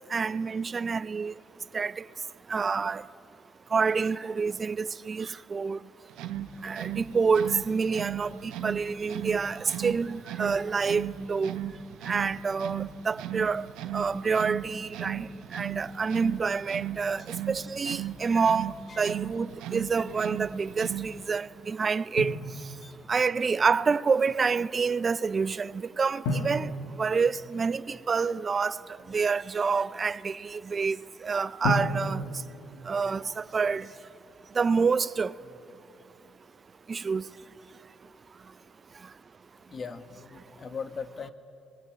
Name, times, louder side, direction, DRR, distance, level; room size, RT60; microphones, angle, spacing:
voice 1, 0.1-1.3 1.7-2.0 2.5-3.0 3.7-5.8 6.6-11.6 12.1-13.7 13.9-22.4 23.1-26.7 27.0-28.8 29.1-32.2 32.9-33.9 34.6-35.3 36.9-37.2, right 5 dB, 40° right, 0.5 m, -28 dB
sound 1, 6.1-21.3, right 10 dB, 80° right, 1.2 m, -37 dB
Drum, 22.2-23.2 26.2-28.1 31.6-33.6, left 1 dB, 85° left, 2.3 m, -33 dB
voice 2, 32.4-32.8 35.4-35.6 39.7-41.3, left 5 dB, 45° left, 1.6 m, -41 dB
25.5 x 21.0 x 8.5 m
supercardioid pair, 65°, 0 cm